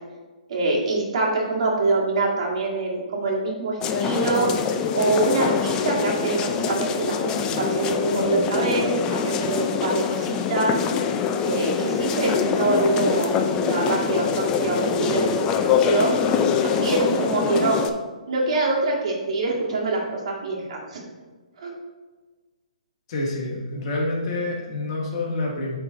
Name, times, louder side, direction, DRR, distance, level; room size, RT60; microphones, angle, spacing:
voice 1, 0.5-4.5 4.9-10.8 11.4-13.4 13.7-16.1 16.6-17.8 18.3-21.0 21.6-21.7, right 3 dB, 55° right, -2 dB, 1.9 m, -25 dB
sound 1, 3.8-17.9, left 6 dB, 20° left, 0.4 m, -24 dB
voice 2, 23.1-25.8, left 2 dB, 40° left, -2 dB, 1.7 m, -27 dB
8.7 x 3.8 x 3.9 m, 1.3 s
hypercardioid pair, 155°, 4 cm